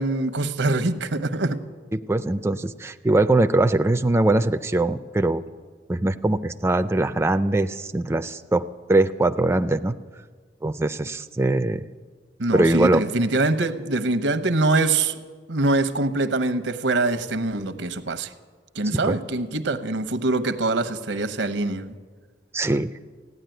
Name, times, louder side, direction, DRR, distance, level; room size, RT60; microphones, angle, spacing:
voice 1, 0.0-1.6 12.4-15.2 15.5-18.3 18.7-21.9, right 2 dB, 85° right, 0.9 m, -24 dB
voice 2, 1.9-5.4 5.9-8.6 8.9-9.9 10.6-11.8 12.5-13.0 18.9-19.2 22.5-22.9, right 2 dB, 15° right, 0.3 m, -21 dB
16.0 x 9.8 x 9.1 m
head